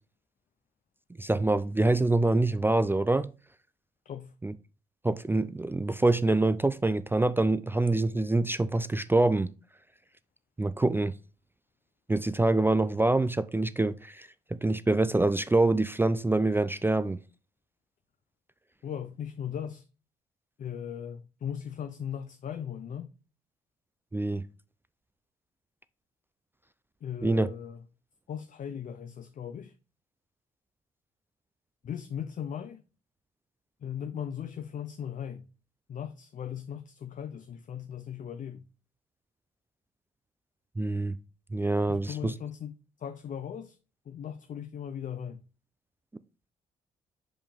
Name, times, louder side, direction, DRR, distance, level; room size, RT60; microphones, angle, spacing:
voice 1, 1.2-3.3 4.4-4.5 5.0-9.5 10.6-11.1 12.1-17.2 24.1-24.4 27.2-27.5 40.8-41.2 41.5-42.3, right 2 dB, 10° right, 0.4 m, -25 dB
voice 2, 18.8-19.9 20.6-23.1 27.0-27.8 28.3-29.7 31.8-32.8 33.8-35.5 35.9-38.6 41.9-43.8 44.1-45.4, left 8 dB, 45° left, 0.5 m, -38 dB
5.2 x 5.1 x 3.5 m
hypercardioid pair, 50°, 18 cm